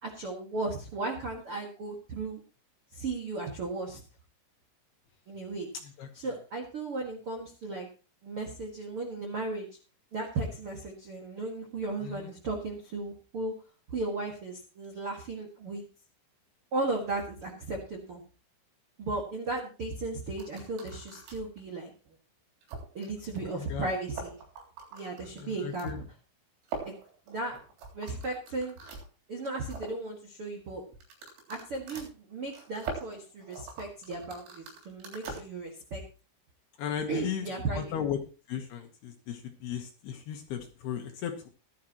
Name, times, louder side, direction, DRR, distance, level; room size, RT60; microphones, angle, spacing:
voice 1, 0.0-2.4 2.9-4.0 5.3-5.7 6.1-7.9 8.2-9.7 10.1-13.5 13.9-15.8 16.7-18.2 19.0-21.9 22.9-24.4 24.9-26.0 26.8-26.9 27.3-27.6 27.9-28.8 29.3-30.8 31.5-36.0 37.1-37.9, right 2 dB, 60° right, 0 dB, 1.5 m, -35 dB
sound 1, 20.4-21.6 22.1-22.2 22.6-23.1 23.4-23.5 23.7-23.8 24.0-25.9 26.6-29.1 29.4-30.0 30.9-35.4, right 4 dB, 85° right, 5.9 m, -42 dB
voice 2, 23.6-23.9 25.4-26.0 28.1-28.2 36.8-38.2 38.5-41.5, left 9 dB, 70° left, 4 dB, 2.7 m, -36 dB
16.0 x 12.0 x 3.0 m, 0.34 s
omnidirectional pair, 5.7 m